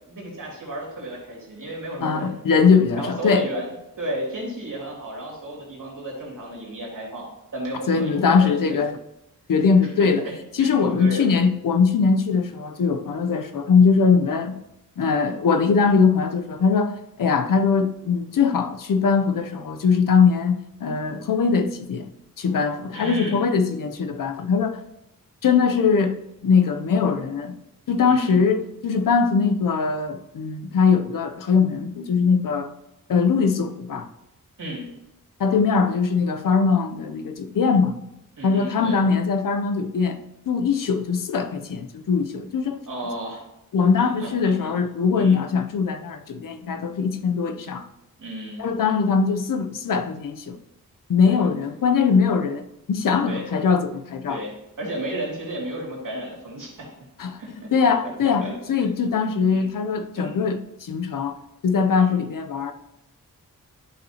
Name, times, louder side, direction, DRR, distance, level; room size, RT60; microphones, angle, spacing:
voice 1, 0.1-2.4 3.0-7.3 7.5-8.6 10.0-11.3 22.9-23.5 28.1-28.4 34.6-34.9 38.4-39.0 42.9-43.4 44.0-44.7 45.2-45.4 48.2-48.7 51.3-51.5 53.3-53.4 54.3-56.9 57.4-58.9 59.5-59.7 60.1-60.4 62.0-62.1, right 1 dB, 65° right, 2.7 m, -33 dB
voice 2, 2.0-3.5 7.9-9.0 9.5-10.3 10.5-14.6 15.0-22.1 22.4-24.8 25.4-27.6 27.9-32.7 33.1-34.1 35.4-38.0 38.4-40.2 40.5-42.8 43.7-47.9 48.6-50.6 51.1-54.4 57.2-57.4 57.7-61.4 61.6-62.7, left 5 dB, 70° left, 0.6 m, -21 dB
12.0 x 5.5 x 2.8 m
wide cardioid pair, 155°, 34 cm